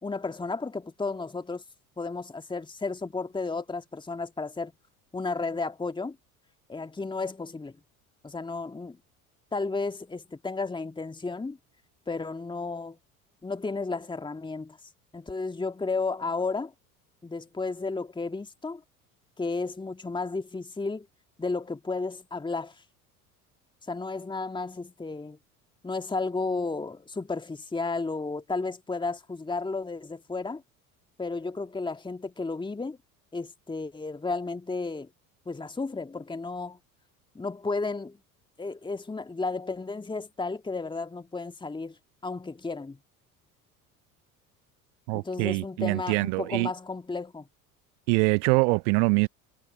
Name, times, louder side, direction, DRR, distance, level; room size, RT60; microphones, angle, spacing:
voice 1, 0.0-1.6 2.0-4.7 5.1-6.2 6.7-7.8 8.2-9.0 9.5-11.6 12.1-13.0 13.4-14.8 15.1-16.7 17.2-18.8 19.4-21.1 21.4-22.8 23.9-25.4 25.8-30.6 31.2-33.0 33.3-35.1 35.5-36.8 37.3-38.2 38.6-42.0 42.2-43.0 45.1-47.4, left 3 dB, 10° left, 2.1 m, -33 dB
voice 2, 45.1-46.7 48.1-49.3, right 34 dB, 55° right, 0.9 m, -24 dB
figure-of-eight pair, 65°, 44 cm